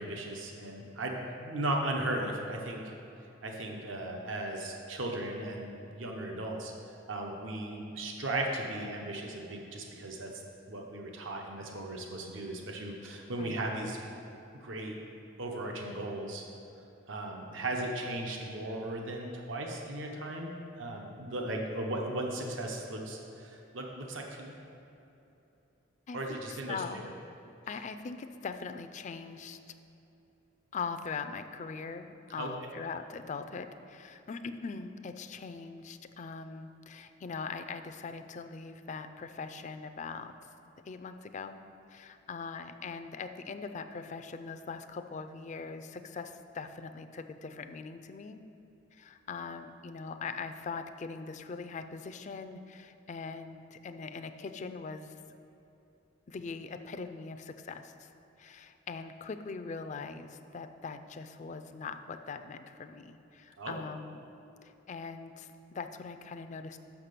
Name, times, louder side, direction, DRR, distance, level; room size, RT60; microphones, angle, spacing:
voice 1, 0.0-2.8 3.4-6.7 7.1-10.3 10.7-14.0 14.5-15.0 15.4-16.4 17.1-24.5 26.1-27.1 32.4-32.5 63.6-63.7, right 1 dB, 75° right, 1 dB, 0.9 m, -36 dB
voice 2, 26.1-27.1 27.7-29.6 30.7-40.3 40.9-41.6 41.9-48.4 48.9-55.2 56.3-58.1 58.4-64.3 64.6-66.8, left 4 dB, 40° left, 9 dB, 0.4 m, -41 dB
6.5 x 5.9 x 6.7 m, 2.9 s
head